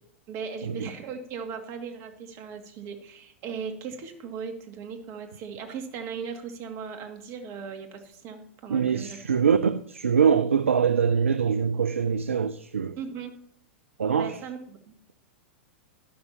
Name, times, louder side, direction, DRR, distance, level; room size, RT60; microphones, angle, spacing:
voice 1, 0.3-9.2 13.0-13.3 14.0-14.9, right 6 dB, 40° right, 2.3 m, -38 dB
voice 2, 8.7-13.0 14.0-14.4, right 6 dB, 85° right, 0.6 m, -23 dB
12.5 x 11.5 x 2.9 m
hypercardioid pair, 105°, 7 cm